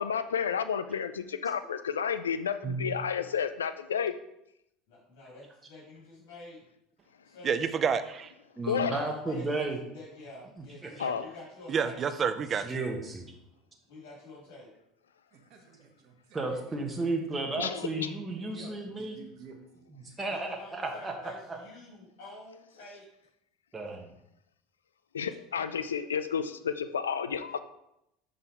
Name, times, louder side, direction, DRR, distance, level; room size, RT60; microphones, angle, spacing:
voice 1, 0.0-4.1 8.7-9.0 11.0-11.3 17.6-18.1 25.1-27.6, left 7 dB, 90° left, 11 dB, 0.4 m, -31 dB
voice 2, 2.6-3.0 8.6-9.8 10.8-11.1 12.6-13.2 16.3-19.2 20.0-21.6 23.7-24.1, right 2 dB, 20° right, 1 dB, 1.1 m, -33 dB
voice 3, 4.9-6.6 7.2-7.6 8.8-12.0 13.9-14.7 20.3-23.1, left 2 dB, 70° left, -5 dB, 2.4 m, -48 dB
voice 4, 7.4-8.3 11.7-12.6, right 6 dB, 40° right, 12 dB, 0.5 m, -28 dB
voice 5, 15.3-16.8 17.3-17.4 18.3-19.9, right 5 dB, 55° right, 3 dB, 1.2 m, -53 dB
5.7 x 3.8 x 4.5 m, 0.81 s
hypercardioid pair, 80°, 0 cm